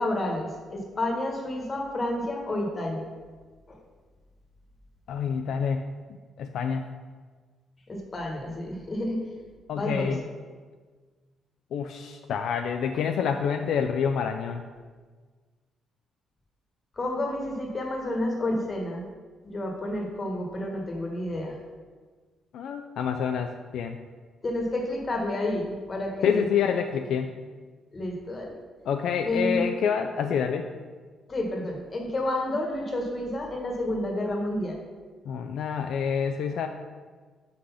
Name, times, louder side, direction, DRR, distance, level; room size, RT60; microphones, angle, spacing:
voice 1, 0.0-3.0 3.7-3.8 7.9-9.3 9.7-10.1 17.0-19.0 19.4-21.5 24.4-26.4 27.9-28.5 29.2-29.7 31.3-34.8, left 1 dB, 35° left, 1 dB, 1.2 m, -30 dB
voice 2, 5.1-5.8 6.4-6.8 9.7-10.2 11.7-14.6 22.5-24.0 26.2-27.3 28.9-30.7 35.3-36.7, left 7 dB, 75° left, 6 dB, 0.3 m, -27 dB
4.9 x 4.0 x 5.6 m, 1.5 s
cardioid pair, 90°, 0 cm